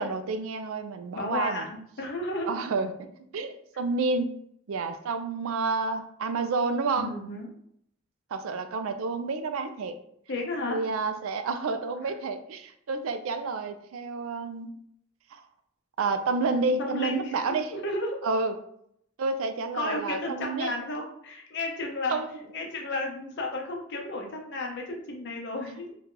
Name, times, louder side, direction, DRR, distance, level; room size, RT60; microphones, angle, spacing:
voice 1, 0.0-1.7 2.5-2.9 3.3-4.3 4.7-7.1 8.3-9.9 10.6-14.7 15.3-15.4 16.0-17.7 18.2-18.5 19.2-20.7 22.1-22.3, right 3 dB, 80° right, 8 dB, 0.4 m, -29 dB
voice 2, 1.1-2.5 7.0-7.5 10.3-10.8 12.0-12.1 16.8-17.4 17.7-18.2 19.7-22.2 22.5-25.9, left 2 dB, 55° left, 1 dB, 0.7 m, -33 dB
2.8 x 2.3 x 3.7 m, 0.70 s
head